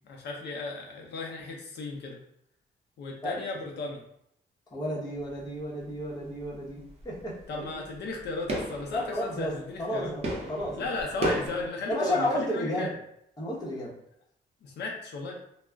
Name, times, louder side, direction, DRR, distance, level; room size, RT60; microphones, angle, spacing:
voice 1, 0.0-2.2 3.0-4.0 7.5-10.1 10.7-12.9 14.6-15.3, left 3 dB, 75° left, 0 dB, 0.5 m, -35 dB
voice 2, 4.7-7.3 7.7-7.8 8.9-10.2 10.5-10.9 11.2-11.5 11.9-13.0 13.4-13.9, left 1 dB, 20° left, -6 dB, 0.8 m, -32 dB
sound 1, 5.2-5.6 5.9-11.7, right 1 dB, 35° right, 0.5 m, -35 dB
2.3 x 2.0 x 3.3 m, 0.73 s
cardioid pair, 140°, 18 cm